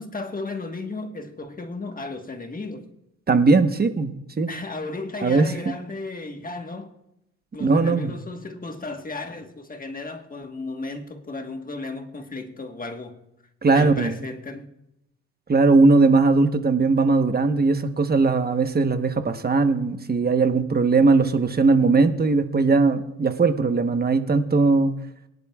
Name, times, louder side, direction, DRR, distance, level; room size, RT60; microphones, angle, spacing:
voice 1, 0.0-2.9 4.5-6.9 7.5-13.2 13.7-14.7, left 3 dB, 30° left, 1.4 m, -34 dB
voice 2, 3.3-4.5 5.2-5.5 7.6-8.2 13.6-14.1 15.5-24.9, right 3 dB, 30° right, 1.0 m, -19 dB
23.0 x 11.0 x 2.4 m
cardioid pair, 90°, 30 cm